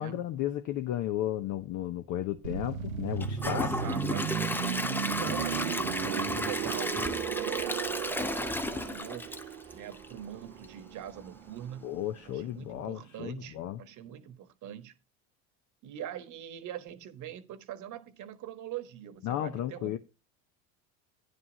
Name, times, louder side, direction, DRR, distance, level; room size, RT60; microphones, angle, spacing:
voice 1, 0.0-3.7 11.8-13.8 19.2-20.0, left 12 dB, 45° left, 0.7 m, -34 dB
sound 1, 2.4-12.1 12.4-12.6, right 9 dB, 90° right, 0.8 m, -36 dB
Gurgling / Toilet flush / Trickle dribble, 3.2-10.2 10.6-10.7 11.2-11.3, left 1 dB, 5° left, 0.6 m, -34 dB
voice 2, 3.4-7.0 7.3-9.3 9.7-12.0 12.2-14.9 15.8-20.0, right 11 dB, 45° right, 1.3 m, -43 dB
9.8 x 5.2 x 5.5 m
hypercardioid pair, 80°, 40 cm